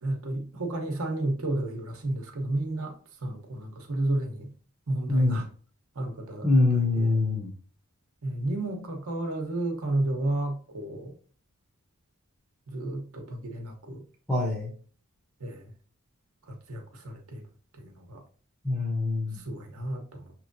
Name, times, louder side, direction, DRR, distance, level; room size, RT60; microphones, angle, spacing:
voice 1, 0.0-2.9 3.2-4.5 4.9-5.5 5.9-7.1 8.2-11.1 12.7-14.0 15.4-15.7 16.5-17.5 17.7-18.2 19.3-20.3, right 1 dB, 65° right, 2 dB, 0.9 m, -32 dB
voice 2, 5.1-5.4 6.4-7.5 14.3-14.7 18.6-19.4, left 2 dB, 5° left, -5 dB, 0.8 m, -24 dB
6.0 x 3.0 x 2.6 m, 0.43 s
head